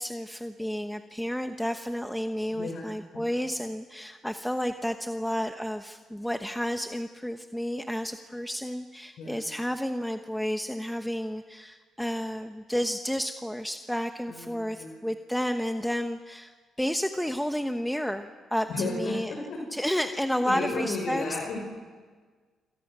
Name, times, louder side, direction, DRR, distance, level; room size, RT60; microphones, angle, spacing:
voice 1, 0.0-16.5 16.8-19.3 19.7-21.2, equal, 5° left, 6 dB, 1.1 m, -31 dB
voice 2, 2.5-2.9 3.1-3.2 9.2-9.4 14.3-15.0 18.7-19.6 20.5-21.6, left 3 dB, 70° left, 0 dB, 5.4 m, -33 dB
28.0 x 27.0 x 6.2 m, 1.5 s
cardioid pair, 90°, 0 cm